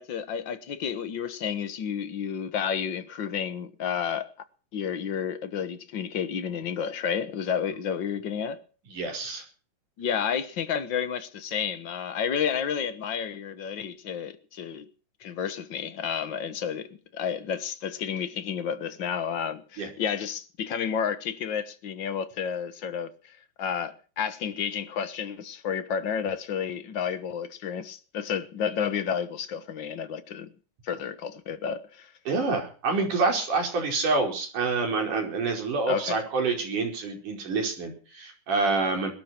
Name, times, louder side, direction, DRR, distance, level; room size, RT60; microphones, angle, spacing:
voice 1, 0.0-4.3 4.7-8.6 10.0-14.9 15.2-30.5 30.8-32.1 35.9-36.2, left 7 dB, 65° left, 1.1 m, -31 dB
voice 2, 8.9-9.4 19.8-19.9 32.3-39.1, right 3 dB, 60° right, 6.5 m, -27 dB
22.0 x 13.0 x 4.5 m
omnidirectional pair, 4.0 m